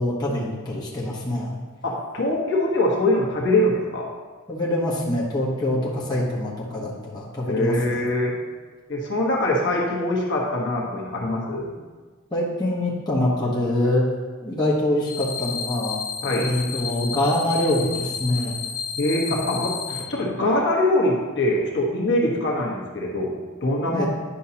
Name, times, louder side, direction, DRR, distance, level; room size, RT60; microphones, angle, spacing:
voice 1, 0.0-1.6 4.5-8.1 12.3-14.0 14.4-16.0 16.4-18.6 23.9-24.1, left 1 dB, 20° left, -6 dB, 1.2 m, -24 dB
voice 2, 1.8-4.1 7.5-8.3 8.9-11.8 16.2-16.5 19.0-24.1, left 1 dB, 55° left, -2 dB, 1.3 m, -23 dB
sound 1, 15.1-20.0, left 6 dB, 80° left, 0.6 m, -31 dB
10.0 x 5.5 x 2.9 m, 1.4 s
head